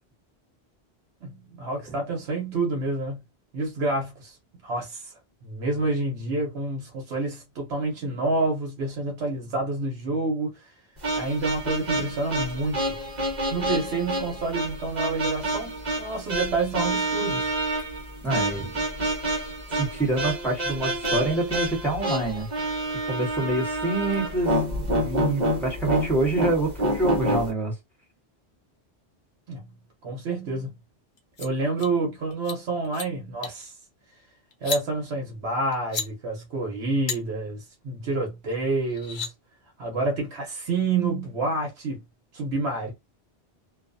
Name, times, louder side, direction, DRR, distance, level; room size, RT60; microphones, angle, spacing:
voice 1, 1.2-3.2 3.5-4.4 4.6-5.1 5.4-10.7 11.1-12.8 13.5-17.5 29.5-29.7 30.0-30.7 31.4-33.8 34.6-39.3 39.8-42.0 42.3-42.9, right 3 dB, 75° right, 1.0 m, -28 dB
sound 1, 11.0-27.5, right 1 dB, 45° right, 1.0 m, -28 dB
voice 2, 18.2-18.8 19.8-22.5 23.0-27.7, right 2 dB, ahead, 1.0 m, -26 dB
sound 2, 31.2-31.5 31.8-31.9 32.3-32.6 32.8-33.1 33.4-33.6 34.5-34.8 35.7-36.1 37.1-37.2 38.5-38.6 38.9-39.3, left 5 dB, 55° left, 0.7 m, -32 dB
2.4 x 2.3 x 2.5 m
omnidirectional pair, 1.1 m